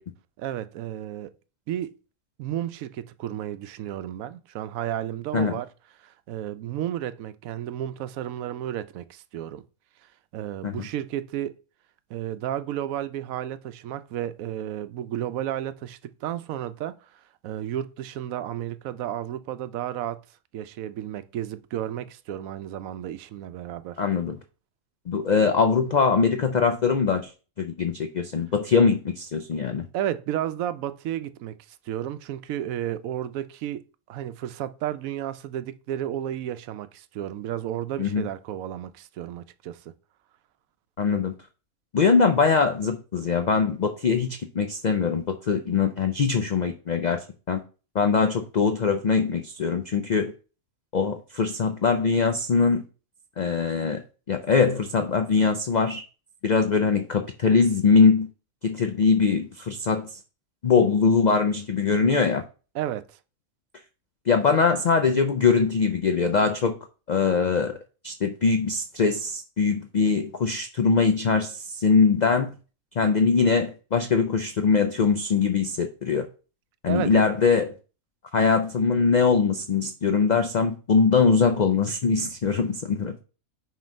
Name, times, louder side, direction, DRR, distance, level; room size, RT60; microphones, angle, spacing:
voice 1, 0.4-1.3 1.7-1.9 2.4-5.7 6.0-9.6 10.3-11.6 12.1-20.2 20.5-24.0 29.9-33.8 34.1-39.9 62.7-63.2 76.8-77.3, right 11 dB, 85° right, 1.0 m, -32 dB
voice 2, 24.0-24.4 25.1-27.3 27.6-29.9 38.0-38.3 41.0-41.3 41.9-47.6 47.9-50.3 50.9-52.8 53.4-54.0 54.3-56.0 56.4-58.3 58.6-60.1 60.6-62.4 64.3-66.8 67.1-67.8 68.0-72.5 73.0-76.3 76.8-77.7 78.3-83.2, left 5 dB, 70° left, 0.4 m, -22 dB
7.4 x 3.1 x 5.1 m
omnidirectional pair, 1.4 m